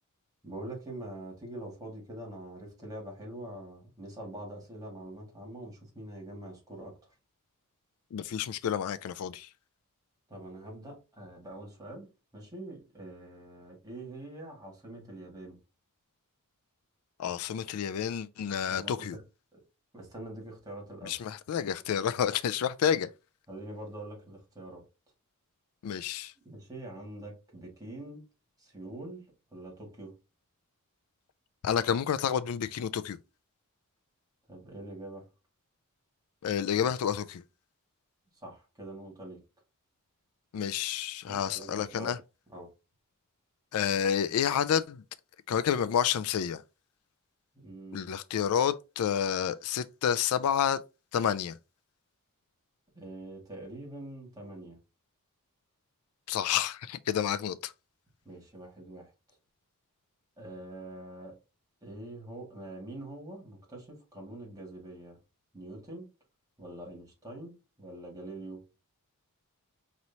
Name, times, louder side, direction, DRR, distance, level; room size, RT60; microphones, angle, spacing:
voice 1, 0.4-6.9 10.3-15.6 18.5-19.2 19.5-19.6 19.9-21.2 23.5-24.8 26.4-28.2 28.6-29.3 29.5-30.1 34.5-35.3 38.3-39.4 41.3-42.2 42.5-42.7 47.5-48.1 52.9-54.8 58.2-59.1 60.4-61.4 61.8-65.2 65.5-66.1 66.6-68.7, right 1 dB, 15° right, 1.9 m, -44 dB
voice 2, 8.1-9.5 17.2-19.2 21.0-23.1 25.8-26.3 31.6-33.2 36.4-37.4 40.5-42.2 43.7-45.0 45.5-46.6 47.9-50.8 51.1-51.5 56.3-57.7, left 8 dB, 75° left, 0.3 m, -29 dB
5.3 x 3.1 x 2.8 m
head